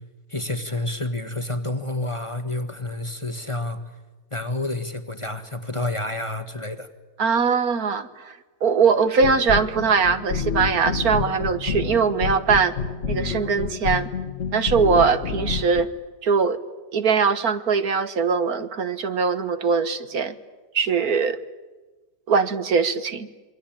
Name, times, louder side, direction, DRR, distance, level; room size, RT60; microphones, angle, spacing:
voice 1, 0.3-3.8 4.3-6.9, left 2 dB, 20° left, 8 dB, 1.5 m, -29 dB
voice 2, 7.2-8.2 8.6-12.7 13.1-14.1 14.5-15.9 16.2-16.6 16.9-20.3 20.7-21.4 22.3-23.3, right 5 dB, 65° right, 11 dB, 1.7 m, -21 dB
sound 1, 9.2-15.8, left 6 dB, 50° left, 1.6 m, -28 dB
27.5 x 23.5 x 8.9 m, 1.2 s
omnidirectional pair, 1.8 m